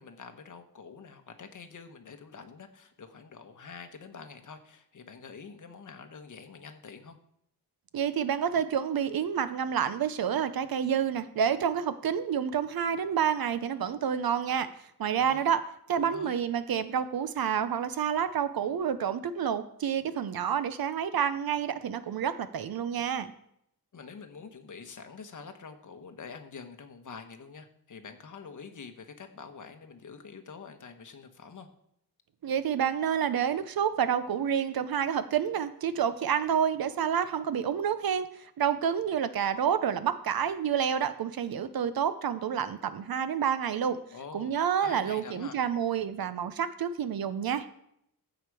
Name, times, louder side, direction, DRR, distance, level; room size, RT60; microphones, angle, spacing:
voice 1, 0.0-7.2 15.1-15.4 16.0-16.4 23.9-31.7 44.1-44.5 44.8-45.6, left 5 dB, 50° left, 7 dB, 1.2 m, -46 dB
voice 2, 7.9-14.7 15.0-15.6 15.9-23.3 32.4-44.0 44.3-47.7, right 8 dB, 65° right, 13 dB, 0.7 m, -29 dB
15.0 x 5.1 x 4.8 m, 0.74 s
wide cardioid pair, 140°, 39 cm